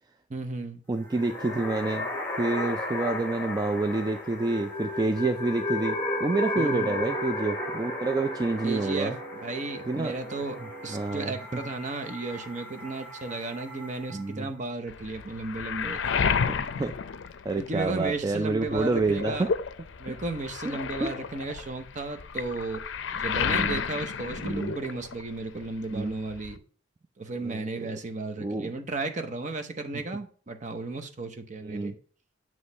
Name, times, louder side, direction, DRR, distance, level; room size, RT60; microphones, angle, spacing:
voice 1, 0.3-0.8 6.6-7.0 8.6-9.1 9.4-10.6 10.8-16.1 17.6-19.5 20.0-22.8 23.1-26.6 27.2-31.9, right 3 dB, 40° right, 0.8 m, -34 dB
voice 2, 0.9-2.1 2.4-9.2 9.9-10.1 10.9-11.3 14.1-14.5 16.8-16.9 17.4-19.5 20.7-21.1 23.5-23.8 24.4-24.7 25.9-26.2 27.4-27.7 28.4-28.7 31.6-31.9, right 3 dB, 20° right, 0.3 m, -28 dB
sound 1, 1.0-14.3, left 2 dB, 10° left, 1.3 m, -35 dB
Wind instrument woodwind instrument, 5.7-11.1, right 2 dB, 60° right, 1.5 m, -44 dB
Waves surf, 14.9-18.1 18.4-25.4 25.6-26.6, left 6 dB, 75° left, 0.5 m, -31 dB
7.9 x 3.1 x 5.3 m
head